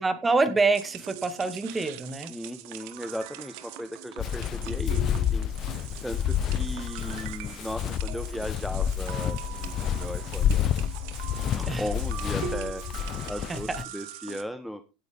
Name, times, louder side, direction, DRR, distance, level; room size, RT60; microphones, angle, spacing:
voice 1, 0.0-2.3 11.7-11.8 13.5-13.6, right 3 dB, 15° right, 10 dB, 2.3 m, -26 dB
sound 1, 0.7-14.4, right 14 dB, 60° right, 1.3 m, -42 dB
voice 2, 2.3-10.7 11.5-14.8, equal, ahead, 9 dB, 1.1 m, -37 dB
Walk footsteps, 4.2-13.8, left 9 dB, 40° left, 0.7 m, -29 dB
16.5 x 9.4 x 3.6 m, 0.30 s
hypercardioid pair, 85°, 0 cm